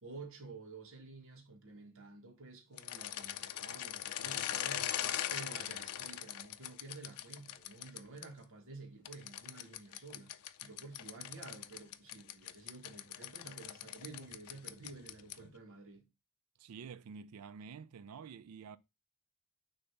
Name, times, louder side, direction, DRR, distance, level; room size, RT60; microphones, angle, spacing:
voice 1, 0.0-5.0 5.3-10.3 10.6-16.1, right 3 dB, 65° right, 1.3 m, -51 dB
sound 1, 2.7-8.3 9.1-15.5, left 12 dB, 90° left, 0.5 m, -41 dB
voice 2, 16.6-18.8, right 6 dB, 85° right, 0.4 m, -49 dB
6.5 x 2.7 x 5.7 m
head